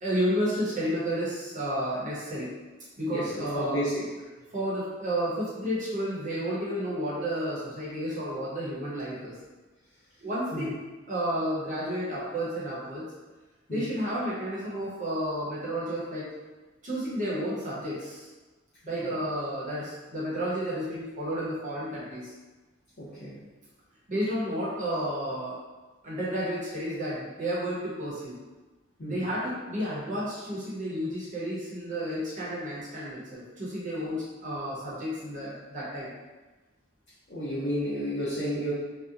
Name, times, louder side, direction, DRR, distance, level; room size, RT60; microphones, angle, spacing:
voice 1, 0.0-2.5 3.0-3.8 4.5-9.3 10.2-10.7 11.1-13.0 13.7-16.3 16.8-18.3 18.9-22.3 24.1-25.5 26.0-28.3 29.1-36.1, equal, 40° right, -8 dB, 0.9 m, -31 dB
voice 2, 3.0-4.3 10.5-10.7 13.7-13.9 19.0-19.1 23.0-23.4 29.0-29.3 37.3-38.7, equal, 55° left, -12 dB, 0.7 m, -32 dB
2.7 x 2.2 x 2.5 m, 1.2 s
head